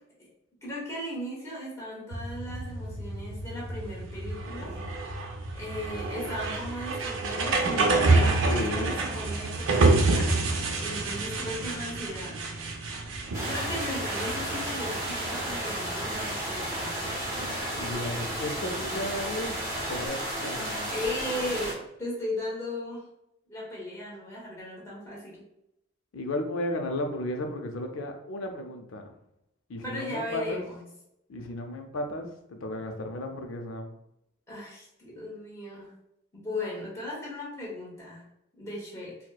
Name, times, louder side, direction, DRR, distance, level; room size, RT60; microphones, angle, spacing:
voice 1, 0.6-4.7 5.5-12.5 13.5-16.9 20.9-23.1 23.5-25.4 29.8-30.8 32.7-32.8 34.5-36.0 36.3-38.2 38.6-39.2, left 1 dB, 15° left, -5 dB, 1.0 m, -37 dB
sound 1, 2.1-20.1, right 3 dB, 85° right, 0.5 m, -29 dB
voice 2, 8.5-9.1 17.8-19.6 19.9-21.0 26.1-29.1 29.7-30.6 31.3-33.9, left 1 dB, 85° left, 4 dB, 0.5 m, -34 dB
sound 2, 13.3-21.7, right 1 dB, 15° right, 0.7 m, -33 dB
4.1 x 2.1 x 2.3 m, 0.82 s
head